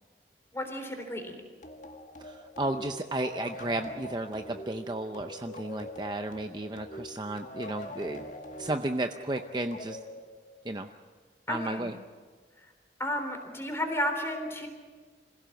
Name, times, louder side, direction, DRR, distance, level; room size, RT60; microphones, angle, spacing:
voice 1, 0.5-1.4 11.5-11.9 13.0-14.7, left 1 dB, 15° left, 5 dB, 3.5 m, -32 dB
sound 1, 1.6-10.9, left 1 dB, 45° left, 1.9 m, -44 dB
voice 2, 2.2-8.2 8.6-10.0 10.6-10.9 11.5-11.9, right 2 dB, 25° right, 6 dB, 0.6 m, -33 dB
26.0 x 16.5 x 7.8 m, 1.5 s
head